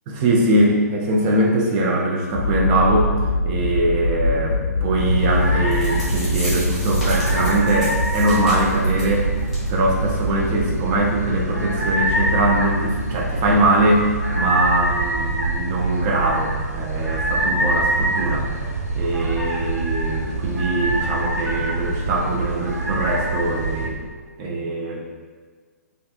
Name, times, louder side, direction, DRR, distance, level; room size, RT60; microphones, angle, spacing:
voice 1, 0.1-3.1 3.5-9.3 9.7-14.1 14.3-18.5 19.0-24.0 24.4-25.0, right 1 dB, 25° right, -1 dB, 0.4 m, -22 dB
sound 1, 2.3-16.5, left 2 dB, 50° left, 0.5 m, -26 dB
sound 2, 5.0-23.9, right 2 dB, 75° right, 0.6 m, -25 dB
sound 3, 5.4-5.5 5.7-9.1 9.5-9.7 10.0-10.1 10.6-10.7, equal, 5° right, 0.8 m, -33 dB
2.5 x 2.3 x 2.3 m, 1.5 s
figure-of-eight pair, 120°, 9 cm